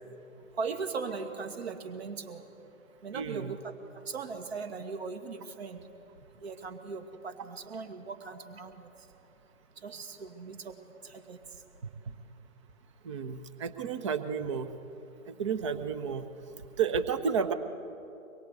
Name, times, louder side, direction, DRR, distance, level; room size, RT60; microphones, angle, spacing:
voice 1, 0.6-2.4 3.0-3.7 4.1-5.8 6.4-8.9 9.8-11.4, right 5 dB, 45° right, 7 dB, 2.2 m, -39 dB
voice 2, 3.1-3.5 12.1-12.2 13.0-14.8 15.3-16.3 16.8-17.5, right 6 dB, 20° right, 11 dB, 0.9 m, -31 dB
24.5 x 21.5 x 8.3 m, 2.8 s
figure-of-eight pair, 135°, 42 cm